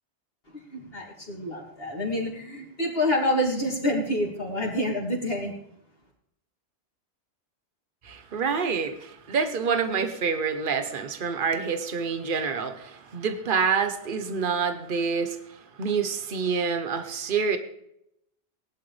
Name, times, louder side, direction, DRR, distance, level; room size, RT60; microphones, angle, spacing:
voice 1, 0.5-5.5, left 1 dB, 55° left, -2 dB, 3.5 m, -27 dB
voice 2, 8.0-17.6, right 5 dB, 50° right, 9 dB, 1.3 m, -27 dB
20.0 x 11.5 x 3.4 m, 0.77 s
omnidirectional pair, 1.2 m